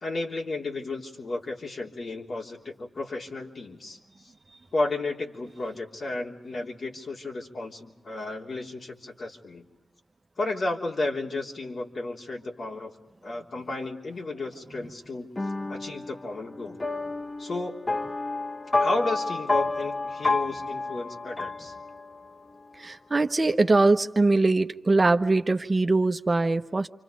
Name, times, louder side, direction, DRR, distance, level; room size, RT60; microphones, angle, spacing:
voice 1, 0.0-4.0 4.7-9.6 10.4-12.9 13.2-15.3 15.7-16.8 17.4-17.8 18.8-21.7, left 2 dB, 60° left, 0 dB, 3.5 m, -33 dB
sound 1, 15.4-22.3, left 3 dB, 30° left, 0.9 m, -30 dB
voice 2, 22.8-26.9, right 3 dB, 35° right, 7 dB, 1.1 m, -22 dB
29.0 x 26.0 x 5.3 m, 1.0 s
cardioid pair, 50°, 0 cm